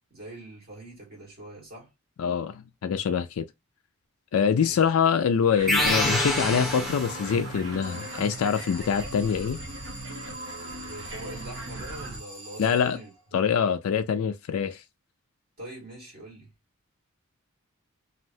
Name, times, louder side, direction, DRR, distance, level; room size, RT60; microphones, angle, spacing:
voice 1, 0.1-1.9 4.5-4.8 10.6-13.4 15.6-16.5, right 1 dB, 45° right, 1.7 m, -43 dB
voice 2, 2.2-3.5 4.3-9.6 12.6-13.0 13.3-14.8, left 7 dB, 75° left, 0.3 m, -25 dB
sound 1, 5.5-12.2, right 2 dB, 60° right, 0.7 m, -39 dB
sound 2, 5.7-7.6, left 1 dB, ahead, 0.7 m, -26 dB
Alarm, 7.8-13.4, right 1 dB, 25° right, 1.1 m, -44 dB
3.1 x 2.7 x 2.6 m
head